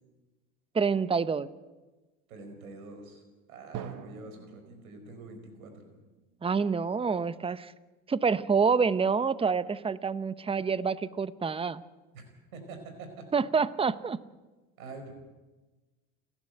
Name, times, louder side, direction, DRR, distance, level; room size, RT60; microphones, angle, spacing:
voice 1, 0.7-1.5 6.4-7.7 8.1-11.8 13.3-14.2, right 5 dB, 15° right, 16 dB, 0.8 m, -27 dB
voice 2, 2.3-3.2 3.5-5.9 12.1-13.3 14.8-15.1, right 3 dB, 90° right, 6 dB, 4.9 m, -46 dB
Drum, 3.7-7.4, right 8 dB, 50° right, 1.7 m, -46 dB
30.0 x 11.0 x 8.0 m, 1.2 s
hypercardioid pair, 80°, 41 cm